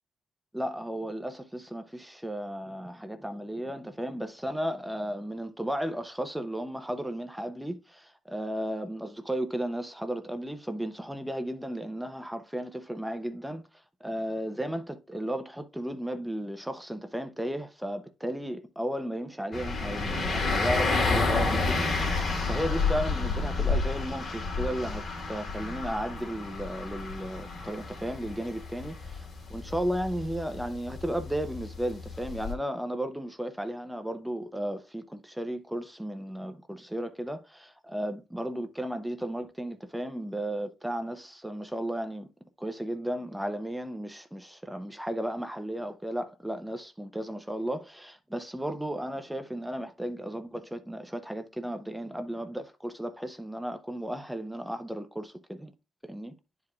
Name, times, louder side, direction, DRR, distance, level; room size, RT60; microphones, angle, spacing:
voice 1, 0.5-13.6 14.0-28.9 29.5-42.3 42.6-55.7 56.0-56.3, equal, 5° right, 0.7 m, -34 dB
sound 1, 19.5-32.5, left 3 dB, 45° left, 2.5 m, -30 dB
10.5 x 4.8 x 2.3 m
cardioid pair, 90°, 0 cm